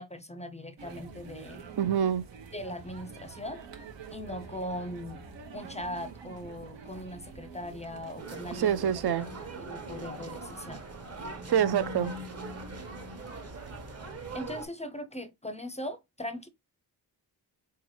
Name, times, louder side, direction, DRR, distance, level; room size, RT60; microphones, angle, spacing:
voice 1, 0.0-1.6 2.5-3.6 4.1-5.2 5.5-9.3 9.6-10.8 14.3-16.5, left 1 dB, 15° left, 0.4 m, -39 dB
sound 1, 0.8-14.4, right 5 dB, 85° right, 1.0 m, -47 dB
voice 2, 1.8-2.3 8.5-9.3 11.5-12.1, right 9 dB, 65° right, 0.5 m, -26 dB
sound 2, 8.2-14.7, right 2 dB, 35° right, 1.1 m, -41 dB
4.4 x 3.7 x 3.1 m
wide cardioid pair, 95°, 43 cm